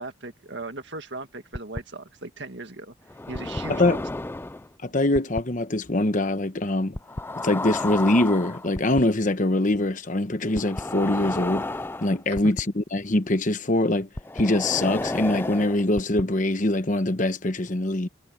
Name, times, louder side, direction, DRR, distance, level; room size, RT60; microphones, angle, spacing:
voice 1, 0.0-2.9 3.3-4.0 12.3-12.5, right 2 dB, 60° right, 1.9 m, -38 dB
sound 1, 1.5-1.8 3.1-4.7 5.1-5.4 6.9-9.0 10.6-12.6 14.2-16.2, left 2 dB, 10° left, 0.3 m, -31 dB
voice 2, 4.8-7.0 7.4-11.7 12.0-14.1 14.3-18.1, left 1 dB, 40° left, 1.0 m, -23 dB
head